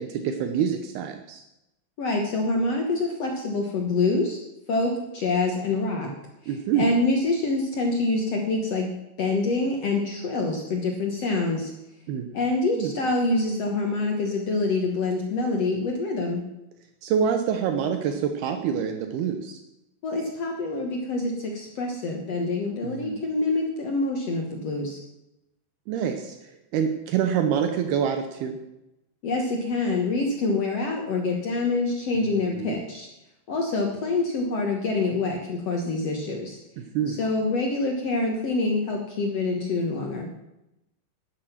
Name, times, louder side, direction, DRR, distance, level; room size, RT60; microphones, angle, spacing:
voice 1, 0.0-1.4 6.5-6.9 12.1-12.3 12.7-12.9 17.0-19.6 22.8-23.2 25.9-26.4 26.7-28.6 32.2-32.8 36.8-37.2, right 8 dB, 80° right, 6 dB, 2.9 m, -26 dB
voice 2, 2.0-4.4 4.7-6.1 6.8-8.9 9.2-11.7 12.3-16.4 20.0-25.0 29.2-33.1 33.5-36.6 37.1-40.3, left 3 dB, 60° left, 1 dB, 1.8 m, -26 dB
12.0 x 11.5 x 5.9 m, 0.90 s
omnidirectional pair, 4.6 m